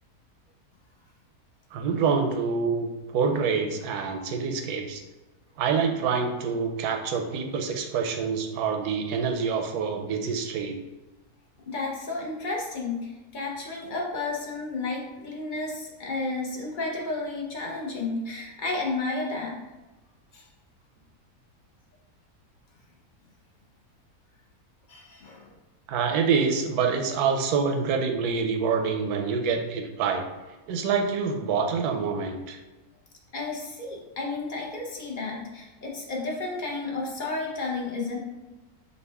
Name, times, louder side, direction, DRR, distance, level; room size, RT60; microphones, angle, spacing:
voice 1, 1.7-5.0 5.6-10.8 25.9-30.2 30.7-32.6, right 5 dB, 85° right, 4 dB, 1.1 m, -26 dB
voice 2, 11.7-19.6 20.3-20.4 24.9-25.5 33.3-38.2, left 3 dB, 45° left, -2 dB, 0.7 m, -32 dB
5.2 x 2.4 x 3.4 m, 1.1 s
omnidirectional pair, 1.6 m